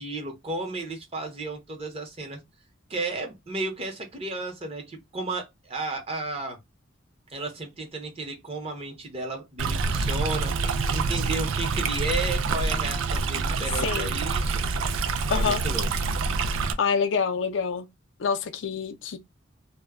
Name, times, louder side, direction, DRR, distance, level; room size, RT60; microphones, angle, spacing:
voice 1, 0.0-2.4 2.9-6.6 7.3-14.6 15.3-15.9, right 2 dB, 30° right, 0.7 m, -33 dB
Stream, 9.6-16.7, right 4 dB, 80° right, 0.4 m, -26 dB
voice 2, 13.8-14.1 15.3-15.6 16.8-17.9 18.2-19.2, left 6 dB, 65° left, 0.4 m, -26 dB
2.1 x 2.1 x 3.4 m
head